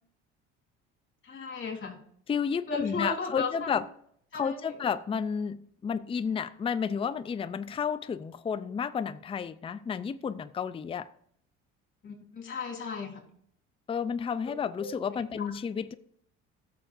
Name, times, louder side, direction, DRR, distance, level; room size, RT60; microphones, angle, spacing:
voice 1, 1.2-2.0 2.7-3.8 4.3-4.7 12.0-13.2 14.8-14.9 15.4-15.5, left 4 dB, 40° left, 2 dB, 3.4 m, -35 dB
voice 2, 2.3-3.9 4.3-11.1 13.9-15.9, left 6 dB, 20° left, 13 dB, 0.4 m, -31 dB
16.0 x 6.7 x 2.6 m, 0.69 s
supercardioid pair, 80°, 30 cm